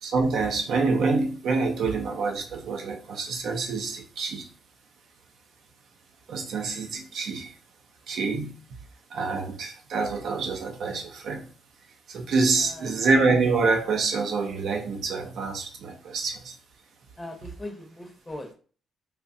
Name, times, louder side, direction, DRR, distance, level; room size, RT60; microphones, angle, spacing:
voice 1, 0.0-4.5 6.3-7.6 8.1-8.5 9.1-11.5 12.1-16.5, right 4 dB, 70° right, 0.7 m, -26 dB
voice 2, 12.6-13.1 17.2-18.5, left 1 dB, 15° left, 0.7 m, -40 dB
3.5 x 2.7 x 2.6 m
cardioid pair, 90°, 0 cm